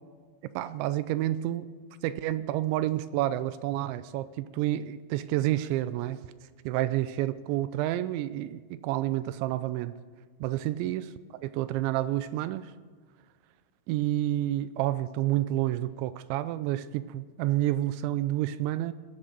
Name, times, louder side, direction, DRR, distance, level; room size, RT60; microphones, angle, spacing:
voice 1, 0.6-1.7 2.0-6.2 6.7-9.9 10.4-11.1 11.4-12.7 13.9-18.9, right 14 dB, 85° right, 13 dB, 2.6 m, -29 dB
19.0 x 7.4 x 6.7 m, 1.6 s
omnidirectional pair, 5.6 m